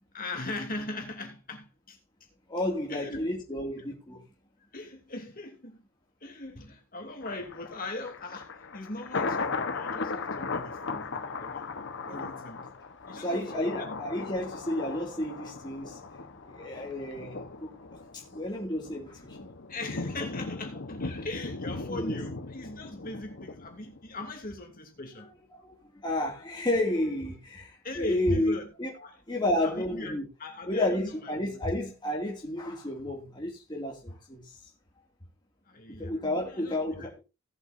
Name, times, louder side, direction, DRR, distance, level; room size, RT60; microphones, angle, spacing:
voice 1, 0.1-2.0 2.9-3.3 3.8-3.9 4.7-5.8 6.2-11.6 12.0-12.7 13.1-14.0 19.7-25.3 27.8-29.2 29.6-31.6 35.7-37.1, left 2 dB, 40° left, 2.8 m, -40 dB
voice 2, 2.5-4.2 12.1-12.3 13.2-16.0 16.4-17.7 18.1-19.4 21.9-22.2 25.6-25.7 26.0-28.9 29.3-30.3 30.7-34.5 36.0-37.2, left 1 dB, 20° left, 2.3 m, -31 dB
Thunder, 7.2-24.3 24.7-24.8, left 4 dB, 55° left, 1.1 m, -37 dB
18.0 x 8.1 x 2.6 m
head